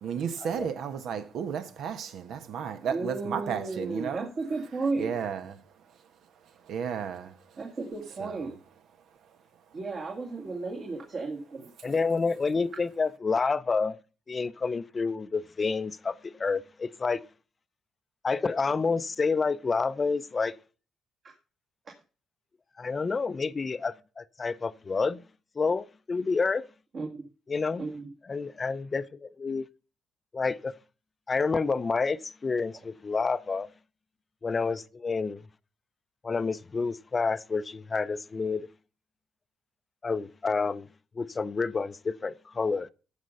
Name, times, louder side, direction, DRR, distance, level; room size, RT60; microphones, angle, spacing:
voice 1, 0.0-4.3 5.0-5.6 6.6-7.4 8.2-8.5, right 7 dB, 75° right, 1.3 m, -33 dB
voice 2, 2.9-5.1 7.6-8.6 9.7-11.7 21.2-21.3 26.9-27.2 27.8-28.1, right 3 dB, 50° right, 2.1 m, -34 dB
voice 3, 11.8-14.0 14.3-17.2 18.2-20.5 22.8-25.2 25.6-26.6 27.5-27.9 28.2-29.7 30.3-30.7 31.3-33.7 34.4-35.4 36.2-38.7 40.0-40.9 41.2-42.9, left 4 dB, 35° left, 0.5 m, -29 dB
14.0 x 5.1 x 5.4 m
cardioid pair, 90°, 0 cm